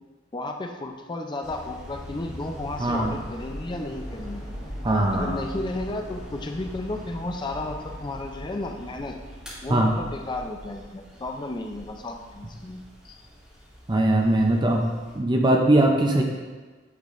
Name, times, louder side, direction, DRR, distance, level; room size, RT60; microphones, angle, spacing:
voice 1, 0.3-4.4 5.1-9.1 9.6-13.2, left 2 dB, 25° left, 4 dB, 0.5 m, -33 dB
sound 1, 1.4-15.1, equal, 5° right, 2.0 m, -41 dB
voice 2, 2.8-3.1 4.8-5.3 9.7-9.9 13.9-16.2, right 1 dB, 25° right, 1 dB, 0.5 m, -21 dB
9.4 x 3.9 x 3.1 m, 1.3 s
head